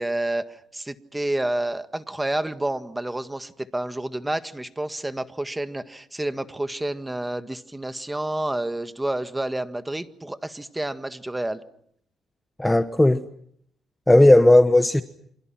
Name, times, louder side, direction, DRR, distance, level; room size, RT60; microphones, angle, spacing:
voice 1, 0.0-11.6 14.2-14.3, right 1 dB, 10° right, 1.7 m, -29 dB
voice 2, 12.6-13.2 14.1-15.0, left 1 dB, 10° left, 1.1 m, -15 dB
29.0 x 27.0 x 5.9 m
cardioid pair, 90°, 0 cm